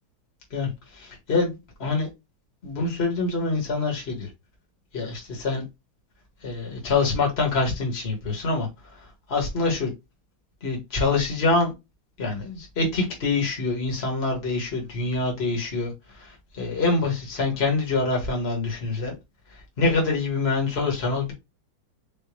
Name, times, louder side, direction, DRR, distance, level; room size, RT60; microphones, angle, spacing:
voice 1, 0.5-2.1 2.6-4.3 4.9-5.6 6.4-9.9 10.6-11.7 12.2-19.1 19.8-21.3, left 3 dB, 30° left, 2.1 m, -25 dB
5.2 x 3.1 x 3.1 m
omnidirectional pair, 2.3 m